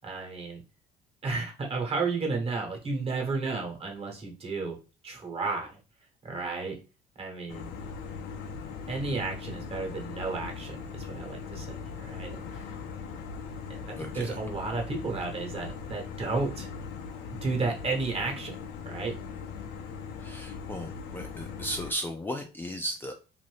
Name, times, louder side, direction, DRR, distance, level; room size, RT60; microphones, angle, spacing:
voice 1, 0.0-0.6 1.2-4.8 5.0-5.8 6.2-6.8 7.2-7.8 8.9-12.6 13.7-16.7 17.4-18.5 18.8-19.2, right 3 dB, 35° right, 2 dB, 1.1 m, -33 dB
sound 1, 7.5-21.9, left 5 dB, 85° left, 0.5 m, -40 dB
voice 2, 14.0-14.4 20.2-23.1, equal, 10° left, 3 dB, 0.3 m, -36 dB
2.6 x 2.6 x 3.3 m, 0.32 s
cardioid pair, 110°, 17 cm